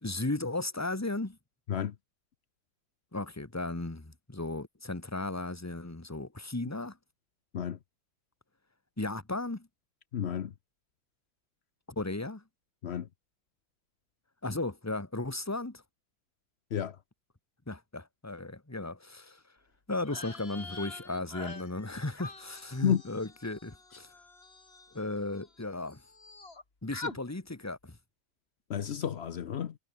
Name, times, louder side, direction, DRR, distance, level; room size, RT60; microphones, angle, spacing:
voice 1, 0.0-1.4 3.1-7.0 9.0-9.7 11.9-12.4 14.4-15.8 17.7-19.4 19.9-24.1 24.9-26.0 26.8-28.0, left 2 dB, 10° left, 1.3 m, -35 dB
voice 2, 10.1-10.5 12.8-13.1 16.7-17.0 22.8-23.0 28.7-29.8, left 9 dB, 85° left, 0.5 m, -31 dB
sound 1, 20.0-25.6 25.9-26.6 26.9-27.2, left 3 dB, 30° left, 2.7 m, -45 dB
omnidirectional pair, 2.2 m